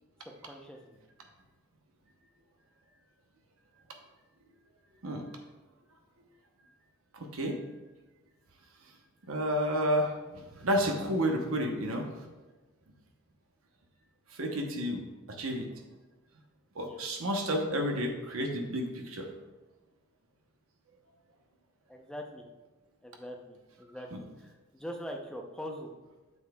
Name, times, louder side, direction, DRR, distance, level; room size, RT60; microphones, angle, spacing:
voice 1, 0.2-1.0 16.8-17.0 21.9-22.4 23.0-25.9, equal, 5° left, 2 dB, 0.6 m, -43 dB
voice 2, 7.1-7.6 9.3-12.1 14.3-15.0 15.3-15.7 16.7-19.3 24.1-24.2, equal, 70° right, 3 dB, 0.9 m, -31 dB
8.2 x 6.8 x 2.3 m, 1.2 s
head